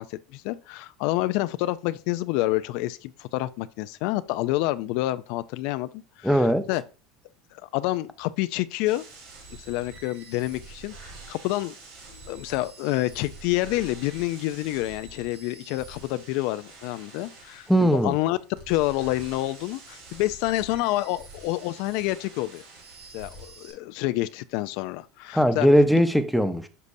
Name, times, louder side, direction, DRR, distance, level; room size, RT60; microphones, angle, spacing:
voice 1, 0.0-6.8 7.5-9.0 9.6-11.7 12.1-18.4 18.7-22.6 23.1-25.7, left 17 dB, 70° left, 0.3 m, -28 dB
voice 2, 6.2-6.7 17.7-18.2 25.3-26.7, equal, ahead, 0.7 m, -19 dB
sound 1, 8.9-23.7, right 3 dB, 85° right, 3.1 m, -47 dB
8.2 x 5.3 x 2.6 m
supercardioid pair, 100°, 0 cm